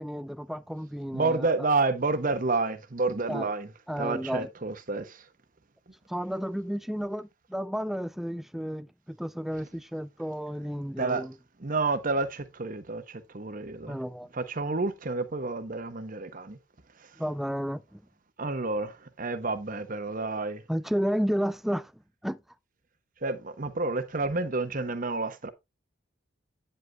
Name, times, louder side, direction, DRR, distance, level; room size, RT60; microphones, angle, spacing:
voice 1, 0.0-1.5 3.3-3.5 3.9-4.5 6.1-11.3 13.9-14.3 17.2-18.0 20.7-21.9 22.2-22.4, equal, ahead, 0.4 m, -32 dB
voice 2, 1.1-3.7 4.0-5.2 11.0-11.2 11.6-14.0 14.3-16.6 18.4-20.6 23.2-25.5, right 3 dB, 45° right, 1.0 m, -29 dB
9.5 x 7.8 x 2.3 m
head